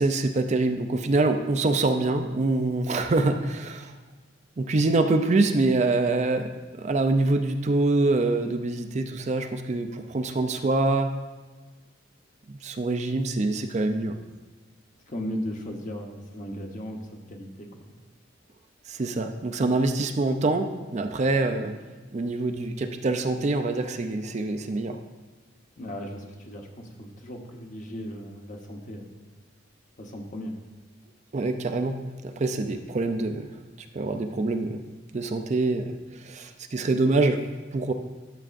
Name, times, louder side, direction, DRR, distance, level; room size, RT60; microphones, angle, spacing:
voice 1, 0.0-3.9 4.6-11.1 12.5-14.2 18.9-21.8 22.1-25.0 31.3-32.0 32.2-33.5 33.9-34.8 35.1-37.4 37.7-37.9, right 2 dB, 35° right, 7 dB, 0.4 m, -25 dB
voice 2, 15.1-17.9 25.8-29.1 30.0-30.5, equal, 40° left, 2 dB, 1.0 m, -37 dB
12.0 x 6.8 x 2.5 m, 1.3 s
head